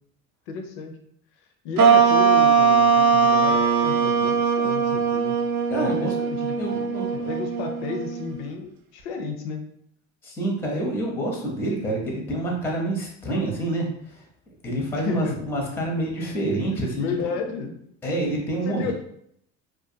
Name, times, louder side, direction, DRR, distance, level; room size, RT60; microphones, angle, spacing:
voice 1, 0.5-1.0 1.6-5.4 5.8-6.9 7.1-9.6 15.0-15.4 16.7-17.7 18.6-18.9, left 5 dB, 85° left, 5 dB, 0.6 m, -32 dB
sound 1, 1.8-8.5, right 6 dB, 55° right, 0.5 m, -20 dB
voice 2, 5.7-6.1 6.6-7.3 10.2-14.2 14.6-17.3 18.0-18.9, right 1 dB, 5° left, 0 dB, 0.5 m, -27 dB
2.4 x 2.2 x 2.6 m, 0.70 s
cardioid pair, 115°, 36 cm